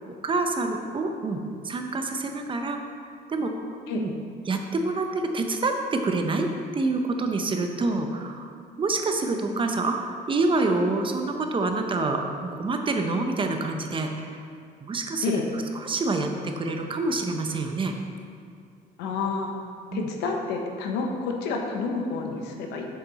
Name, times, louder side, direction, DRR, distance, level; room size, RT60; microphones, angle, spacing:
voice 1, 0.1-2.8 3.3-4.1 4.5-6.5 6.7-14.4 14.8-15.4 15.7-17.9 19.9-20.1, right 3 dB, 30° right, 4 dB, 0.8 m, -27 dB
voice 2, 19.0-19.5 19.9-22.9, left 4 dB, 90° left, 2 dB, 1.0 m, -29 dB
7.2 x 7.1 x 4.1 m, 2.3 s
cardioid pair, 110°, 17 cm